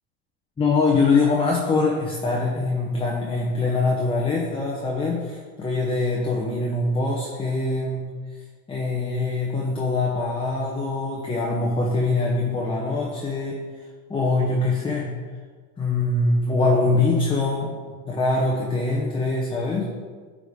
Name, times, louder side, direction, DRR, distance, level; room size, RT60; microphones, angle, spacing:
voice 1, 0.6-8.1 8.7-13.6 14.1-15.1 15.8-17.7 18.1-19.9, left 3 dB, 10° left, -2 dB, 0.8 m, -23 dB
9.2 x 4.9 x 3.6 m, 1.5 s
supercardioid pair, 125°, 46 cm